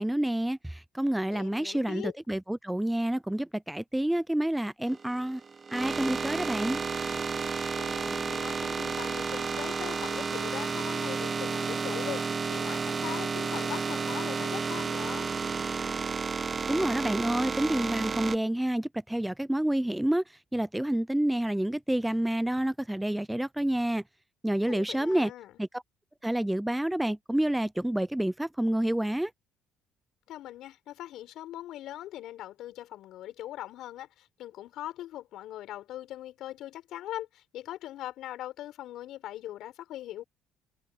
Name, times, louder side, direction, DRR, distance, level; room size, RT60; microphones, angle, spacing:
voice 1, 0.0-5.4 5.7-6.8 16.7-20.2 20.5-24.0 24.4-25.3 25.6-25.8 26.2-29.3, right 1 dB, 5° right, 0.6 m, -28 dB
voice 2, 1.3-2.1 7.8-15.3 24.6-25.5 30.3-40.2, left 13 dB, 70° left, 6.9 m, -41 dB
sound 1, 4.9-18.4, right 5 dB, 35° right, 1.4 m, -32 dB
supercardioid pair, 75°, 0 cm